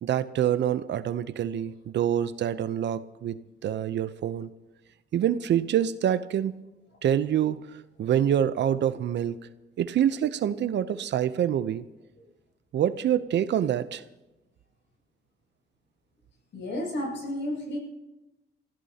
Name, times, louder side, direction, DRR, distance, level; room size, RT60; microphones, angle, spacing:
voice 1, 0.0-4.5 5.1-6.5 7.0-7.6 8.0-9.4 9.8-11.9 12.7-14.0, right 10 dB, 65° right, 14 dB, 0.7 m, -26 dB
voice 2, 16.5-17.8, left 1 dB, 70° left, -1 dB, 7.5 m, -32 dB
26.5 x 15.0 x 2.9 m, 1.0 s
cardioid pair, 90°, 20 cm